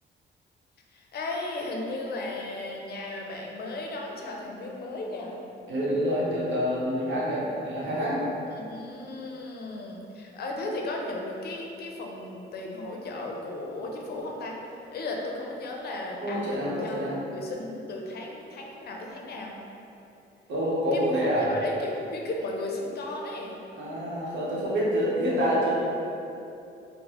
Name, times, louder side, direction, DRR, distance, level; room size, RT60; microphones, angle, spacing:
voice 1, 0.9-5.4 8.5-17.0 17.3-19.5 20.9-23.6, left 2 dB, 55° left, 0 dB, 0.5 m, -35 dB
voice 2, 5.7-8.2 16.2-17.2 20.5-21.5 23.8-25.7, equal, 70° right, -6 dB, 0.9 m, -27 dB
3.7 x 2.0 x 2.9 m, 2.8 s
cardioid pair, 90°, 20 cm